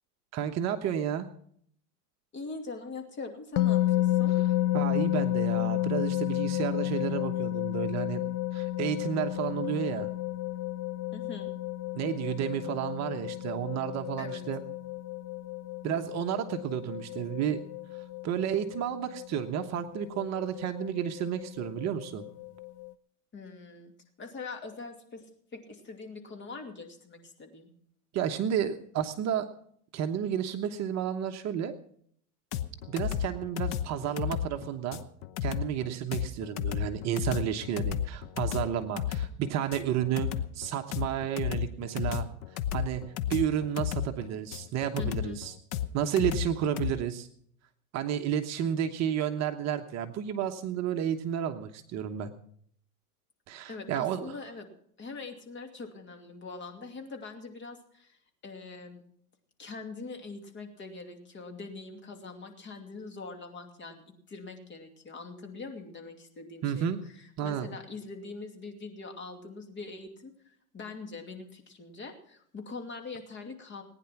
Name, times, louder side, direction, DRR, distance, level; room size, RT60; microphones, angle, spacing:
voice 1, 0.3-1.3 4.7-8.2 8.5-10.1 11.9-14.6 15.8-17.6 18.2-22.2 28.1-29.5 29.9-31.7 32.9-35.0 35.4-40.3 40.5-42.3 42.7-43.0 43.3-45.5 45.9-47.3 47.9-52.3 53.5-54.3 66.6-67.0 67.4-67.7, right 9 dB, 35° right, 6 dB, 1.1 m, -31 dB
voice 2, 2.3-4.3 11.1-11.5 14.2-14.4 23.3-23.9 24.2-25.2 25.5-27.7 45.0-45.4 53.7-54.7 55.0-58.2 58.4-59.0 59.6-64.0 64.3-70.3 70.7-73.8, left 4 dB, 25° left, 4 dB, 2.6 m, -43 dB
sound 1, 3.6-22.9, left 15 dB, 85° left, 0.7 m, -32 dB
sound 2, 32.5-46.9, left 10 dB, 45° left, 1.0 m, -33 dB
19.0 x 10.0 x 5.9 m, 0.64 s
supercardioid pair, 130°, 44 cm